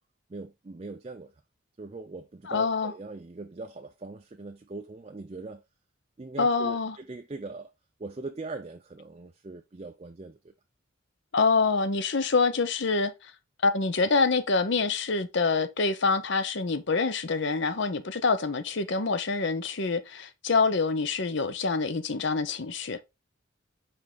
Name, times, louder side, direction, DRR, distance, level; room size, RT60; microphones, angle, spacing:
voice 1, 0.3-1.3 1.8-5.6 6.2-7.7 8.0-10.4, right 3 dB, 30° right, 0.4 m, -41 dB
voice 2, 2.5-2.9 6.4-7.0 11.3-13.3 13.6-23.1, left 4 dB, 55° left, 0.7 m, -26 dB
5.4 x 4.9 x 3.7 m
head